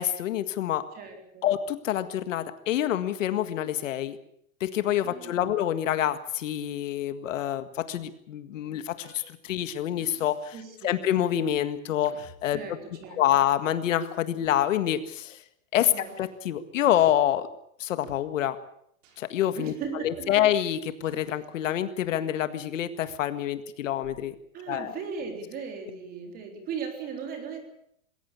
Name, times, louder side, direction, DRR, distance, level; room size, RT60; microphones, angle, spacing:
voice 1, 0.0-0.8 1.4-4.2 4.6-10.5 10.8-12.6 13.2-15.4 15.7-15.9 16.2-17.5 17.8-18.6 19.2-19.7 20.0-24.4 24.7-24.9, left 11 dB, 65° left, 11 dB, 1.8 m, -27 dB
voice 2, 0.9-1.4 5.0-5.6 10.5-11.0 12.5-13.4 15.8-16.1 19.6-20.5 24.5-27.6, right 6 dB, 20° right, 5 dB, 3.8 m, -38 dB
sound 1, 9.0-9.5 10.0-10.6 11.0-11.3 12.0-13.2 14.0-14.2 15.0-15.2 16.0-16.5 17.0-17.1 18.0-18.2 19.0-19.3 20.0-20.6 21.0-22.3 23.0-23.2 24.0-24.4, right 6 dB, 65° right, 6.3 m, -55 dB
21.0 x 17.5 x 8.6 m, 0.71 s
supercardioid pair, 170°, 41 cm